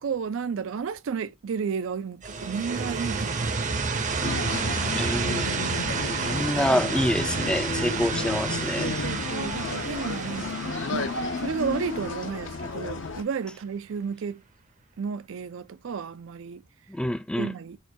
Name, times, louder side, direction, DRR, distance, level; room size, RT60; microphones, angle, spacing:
voice 1, 0.0-3.8 4.2-4.5 6.4-6.5 8.8-11.1 11.4-14.4 15.0-16.6 17.4-17.8, right 6 dB, 85° right, 0.4 m, -32 dB
sound 1, 2.2-12.9, right 4 dB, 40° right, 0.6 m, -30 dB
sound 2, 4.2-13.2, left 4 dB, 70° left, 0.6 m, -33 dB
voice 2, 4.9-5.6 6.1-8.9 16.9-17.5, left 1 dB, 5° left, 0.3 m, -27 dB
6.3 x 2.3 x 2.6 m
head